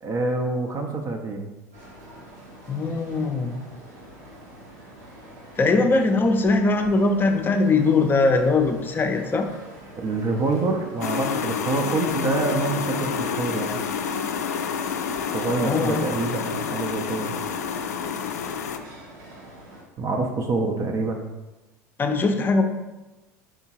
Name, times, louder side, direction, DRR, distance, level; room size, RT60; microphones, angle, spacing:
voice 1, 0.0-1.5 10.0-13.8 15.3-17.3 20.0-21.3, right 3 dB, 35° right, 3 dB, 0.6 m, -26 dB
sound 1, 1.7-19.8, right 1 dB, 80° right, 1.1 m, -45 dB
voice 2, 2.7-3.6 5.6-9.5 15.6-16.1 22.0-22.6, left 3 dB, 25° left, 6 dB, 0.6 m, -21 dB
sound 2, 11.0-18.8, left 7 dB, 75° left, 0.4 m, -28 dB
4.9 x 3.6 x 2.8 m, 1.1 s
figure-of-eight pair, 75°, 9 cm